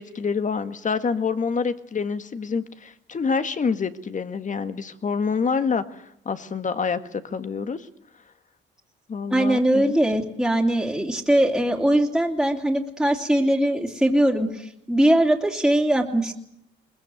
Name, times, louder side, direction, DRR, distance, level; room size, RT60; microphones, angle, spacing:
voice 1, 0.0-7.9 9.1-9.9, left 5 dB, 40° left, 10 dB, 1.8 m, -27 dB
voice 2, 9.3-16.4, right 1 dB, 5° right, 0 dB, 3.0 m, -21 dB
22.0 x 20.5 x 9.3 m, 0.74 s
cardioid pair, 90°, 20 cm